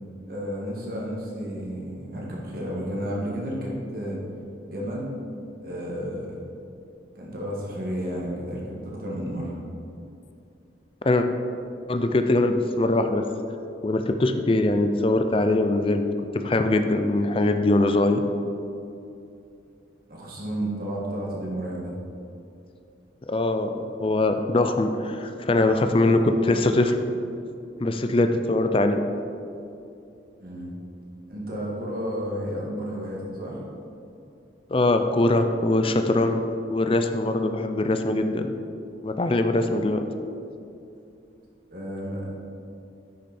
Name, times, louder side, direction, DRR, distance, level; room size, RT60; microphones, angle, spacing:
voice 1, 0.3-4.2 4.7-5.1 5.6-6.4 7.2-9.5 20.1-22.0 30.4-30.7 31.3-33.6 41.7-42.3, equal, 55° right, -4 dB, 1.9 m, -32 dB
voice 2, 11.9-13.2 13.8-16.0 16.3-18.3 23.3-26.9 27.8-29.0 34.7-38.5 39.0-40.0, left 2 dB, 30° left, 7 dB, 0.5 m, -22 dB
10.0 x 6.4 x 4.3 m, 2.6 s
head